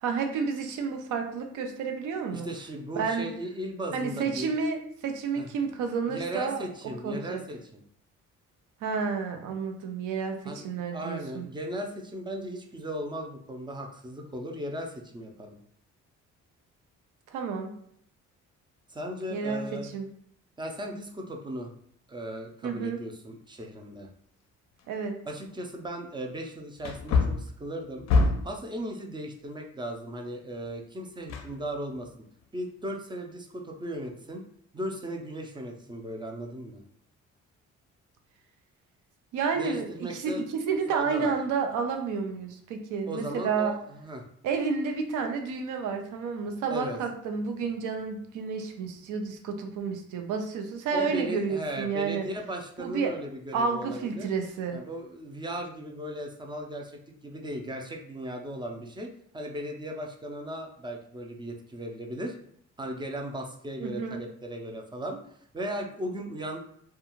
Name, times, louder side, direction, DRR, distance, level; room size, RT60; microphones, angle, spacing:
voice 1, 0.0-2.5 3.0-3.3 3.9-6.6 7.0-7.4 8.8-11.5 17.3-17.7 19.3-19.6 19.9-20.1 22.6-23.0 24.9-25.2 39.3-43.7 44.4-52.2 52.8-53.1 53.5-54.8 63.8-64.2, right 5 dB, 85° right, 5 dB, 0.5 m, -30 dB
voice 2, 2.3-4.5 5.4-5.6 6.1-7.8 10.4-15.6 18.9-19.9 20.6-21.7 22.1-24.1 25.2-28.0 28.4-32.1 32.5-34.4 34.7-36.8 39.5-40.4 40.9-41.3 43.0-44.2 46.7-47.0 50.9-54.3 54.7-62.4 62.8-66.6, right 1 dB, 15° right, 2 dB, 0.4 m, -37 dB
Wood, 24.8-24.9 25.5-25.6 26.8-28.6 31.3-32.1 32.4-32.5, left 3 dB, 60° left, 0.5 m, -26 dB
2.3 x 2.3 x 2.9 m, 0.65 s
cardioid pair, 90°, 30 cm